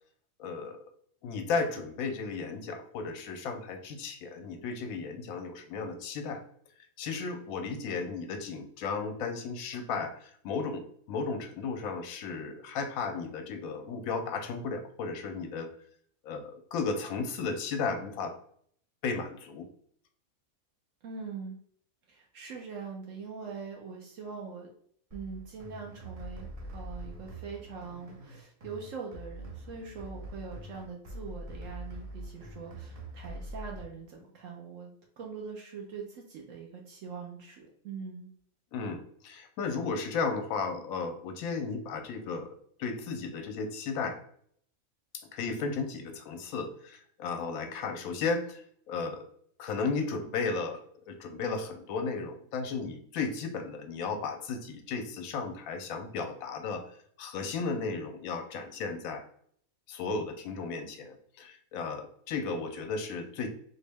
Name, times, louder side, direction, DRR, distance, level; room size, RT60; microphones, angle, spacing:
voice 1, 0.4-0.8 1.2-6.4 7.0-15.7 16.2-18.4 19.0-19.7 38.7-42.5 42.8-44.2 45.3-48.6 48.9-49.2 49.6-56.9 57.2-59.2 59.9-63.5, left 4 dB, 80° left, 6 dB, 1.0 m, -34 dB
voice 2, 21.0-21.6 22.1-24.7 25.1-34.9 35.2-38.3, right 5 dB, 70° right, 0 dB, 0.9 m, -42 dB
sound 1, 25.1-33.8, right 1 dB, 50° right, 0.4 m, -44 dB
4.0 x 2.1 x 3.3 m, 0.62 s
omnidirectional pair, 1.5 m